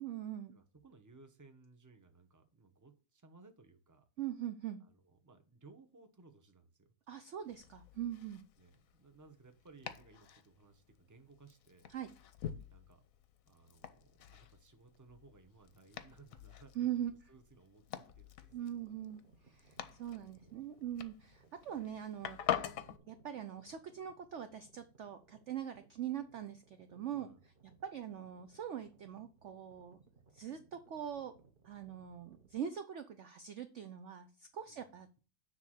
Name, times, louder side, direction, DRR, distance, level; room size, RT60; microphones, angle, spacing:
voice 1, 0.0-0.5 4.2-4.8 7.1-8.4 11.9-12.1 16.8-17.1 18.5-22.6 23.1-27.3 27.8-30.0 30.3-31.3 31.6-35.1, right 10 dB, 70° right, 9 dB, 0.7 m, -42 dB
voice 2, 0.5-4.1 4.8-6.9 8.6-11.9 12.7-13.0 13.5-18.8 20.1-20.7 27.1-27.4 34.7-34.8, right 3 dB, 15° right, 7 dB, 0.8 m, -61 dB
Domestic sounds home sounds, 7.4-23.0, left 10 dB, 60° left, 1.0 m, -46 dB
sound 1, 18.5-32.6, right 4 dB, 35° right, 1.1 m, -66 dB
9.9 x 3.5 x 6.4 m, 0.35 s
omnidirectional pair, 1.9 m